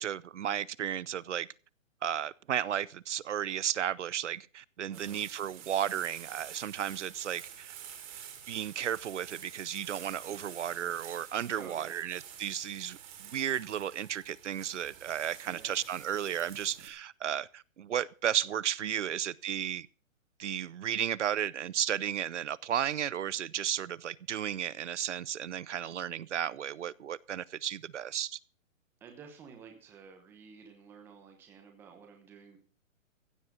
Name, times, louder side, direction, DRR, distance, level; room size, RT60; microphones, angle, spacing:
voice 1, 0.0-1.5 2.0-7.7 8.5-19.9 20.4-28.4, right 10 dB, 60° right, 0.7 m, -34 dB
voice 2, 4.9-5.2 11.5-12.1 15.4-15.9 29.0-32.6, right 6 dB, 5° right, 1.0 m, -52 dB
sound 1, 4.9-16.9, right 9 dB, 25° right, 2.5 m, -48 dB
15.5 x 7.7 x 6.2 m
hypercardioid pair, 170°, 40 cm